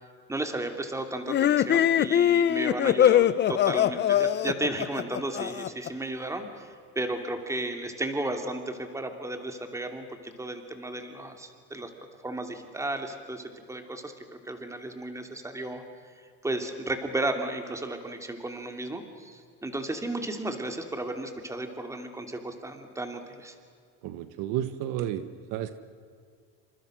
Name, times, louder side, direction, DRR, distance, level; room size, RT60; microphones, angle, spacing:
voice 1, 0.3-11.9 12.2-15.8 16.2-23.6, right 2 dB, 10° right, 6 dB, 2.8 m, -34 dB
sound 1, 1.3-5.9, left 10 dB, 30° left, 0.8 m, -22 dB
voice 2, 24.0-25.8, right 11 dB, 60° right, 11 dB, 1.5 m, -32 dB
28.5 x 26.5 x 6.3 m, 2.2 s
cardioid pair, 140°, 36 cm